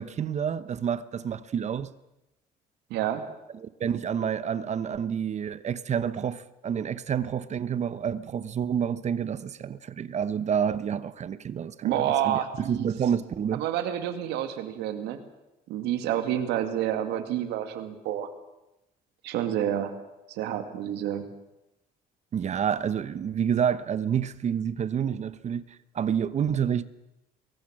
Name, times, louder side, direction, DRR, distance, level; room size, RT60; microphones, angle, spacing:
voice 1, 0.0-1.9 3.5-13.6 22.3-25.6 25.9-26.8, right 8 dB, 40° right, 0.9 m, -29 dB
voice 2, 2.9-3.2 11.8-12.9 13.5-15.2 15.7-18.3 19.2-19.9 20.3-21.3, right 11 dB, 90° right, 2.3 m, -29 dB
22.5 x 18.5 x 7.6 m
cardioid pair, 110°, 17 cm